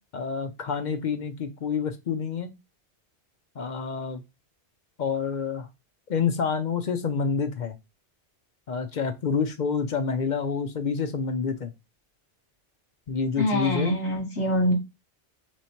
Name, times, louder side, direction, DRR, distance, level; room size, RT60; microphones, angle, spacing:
voice 1, 0.1-2.5 3.6-4.2 5.0-5.7 6.1-7.7 8.7-11.7 13.1-14.0, left 5 dB, 55° left, 0.6 m, -28 dB
voice 2, 13.4-14.7, left 1 dB, 75° left, 1.5 m, -24 dB
3.9 x 3.1 x 4.2 m
omnidirectional pair, 1.2 m